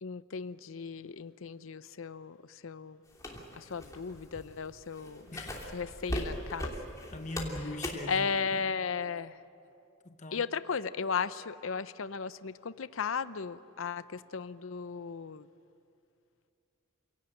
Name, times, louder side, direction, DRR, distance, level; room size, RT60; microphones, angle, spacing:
voice 1, 0.0-3.0 3.6-5.3 5.7-6.7 8.1-9.4 10.3-15.5, left 5 dB, 75° left, 0.6 m, -35 dB
sound 1, 3.1-8.2, left 1 dB, 15° left, 2.9 m, -38 dB
voice 2, 5.3-5.6 7.1-8.6 10.0-10.5, left 2 dB, 35° left, 1.2 m, -41 dB
28.0 x 17.5 x 8.9 m
head